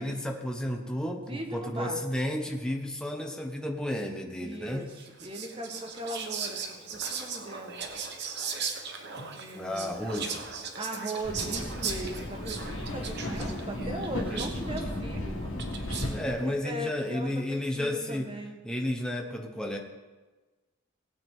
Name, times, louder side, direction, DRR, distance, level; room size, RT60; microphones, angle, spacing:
voice 1, 0.0-4.8 9.5-10.5 14.3-14.6 16.1-18.3 18.6-19.8, left 1 dB, 5° left, 1 dB, 1.1 m, -32 dB
voice 2, 1.3-2.0 4.4-4.9 5.2-7.9 9.1-10.1 10.8-15.4 16.4-18.6, right 1 dB, 25° right, 3 dB, 1.3 m, -39 dB
Whispering, 4.9-16.2, right 6 dB, 55° right, 1.1 m, -38 dB
sound 1, 11.2-16.3, left 1 dB, 85° left, 2.1 m, -35 dB
17.5 x 8.8 x 3.7 m, 1.2 s
head